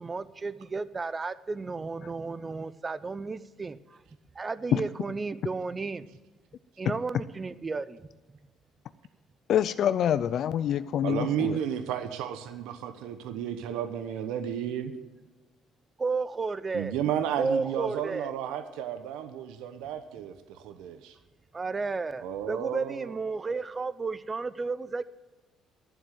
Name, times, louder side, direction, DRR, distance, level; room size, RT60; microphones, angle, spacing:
voice 1, 0.0-4.0 4.3-6.1 6.8-8.4 16.0-17.0 17.4-18.3 21.5-25.0, right 4 dB, 25° right, 16 dB, 0.6 m, -33 dB
voice 2, 9.5-11.6, left 10 dB, 55° left, 13 dB, 0.4 m, -26 dB
voice 3, 11.0-14.9 16.7-21.2 22.2-23.2, right 10 dB, 90° right, 9 dB, 1.0 m, -33 dB
12.0 x 7.4 x 9.1 m, 1.2 s
cardioid pair, 120°, 0 cm